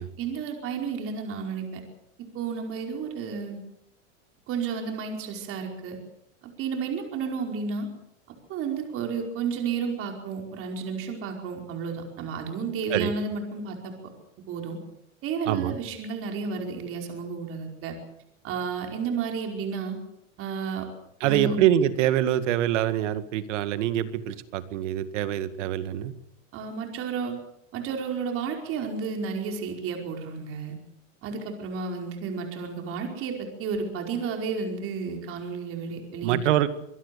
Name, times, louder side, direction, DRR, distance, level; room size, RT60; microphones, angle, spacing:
voice 1, 0.2-1.8 2.2-3.6 4.5-6.0 6.4-7.9 8.5-13.9 14.5-14.8 15.2-18.0 18.4-20.0 20.4-20.9 21.2-21.6 26.5-27.4 27.7-30.8 31.2-36.4, right 5 dB, 35° right, 3 dB, 5.0 m, -32 dB
voice 2, 21.2-26.1 36.2-36.7, right 12 dB, 65° right, 12 dB, 2.0 m, -25 dB
25.0 x 21.0 x 7.0 m, 0.75 s
supercardioid pair, 150°, 38 cm